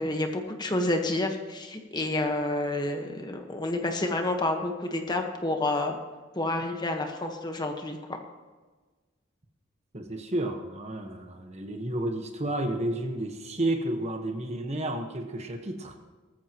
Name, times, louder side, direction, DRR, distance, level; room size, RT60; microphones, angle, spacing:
voice 1, 0.0-6.0 6.3-8.2, left 2 dB, 20° left, 4 dB, 1.2 m, -29 dB
voice 2, 9.9-16.0, right 1 dB, 35° right, 4 dB, 1.2 m, -31 dB
19.0 x 14.0 x 3.0 m, 1.3 s
head